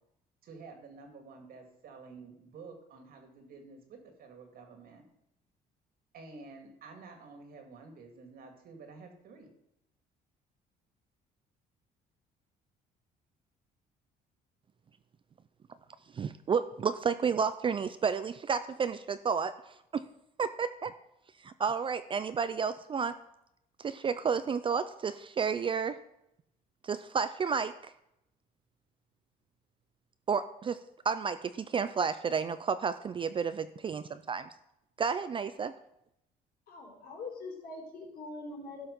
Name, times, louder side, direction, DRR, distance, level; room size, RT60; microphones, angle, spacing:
voice 1, 0.4-5.1 6.1-9.5, right 4 dB, 60° right, 5 dB, 2.3 m, -50 dB
voice 2, 16.1-20.0 20.4-20.9 21.4-23.1 23.8-26.0 26.8-27.7 30.3-34.5 35.0-35.7, right 6 dB, 30° right, 12 dB, 0.4 m, -31 dB
voice 3, 36.7-38.9, left 3 dB, 65° left, -1 dB, 4.1 m, -43 dB
12.5 x 5.7 x 5.4 m, 0.81 s
cardioid pair, 110°, 17 cm